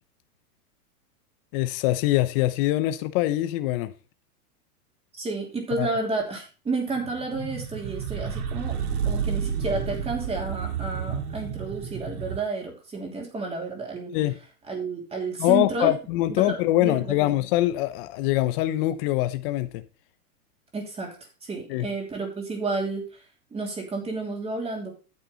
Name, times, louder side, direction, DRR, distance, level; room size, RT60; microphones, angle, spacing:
voice 1, 1.5-3.9 5.8-5.9 14.1-14.3 15.4-19.8 21.7-21.9, left 15 dB, 35° left, 0.8 m, -23 dB
voice 2, 5.1-8.7 9.0-14.1 14.7-15.9 16.3-17.2 20.7-21.1 21.4-23.2 23.5-24.9, right 3 dB, 15° right, 2.9 m, -31 dB
sound 1, 6.9-12.4, right 7 dB, 75° right, 2.0 m, -31 dB
9.3 x 8.7 x 3.9 m
supercardioid pair, 145°, 46 cm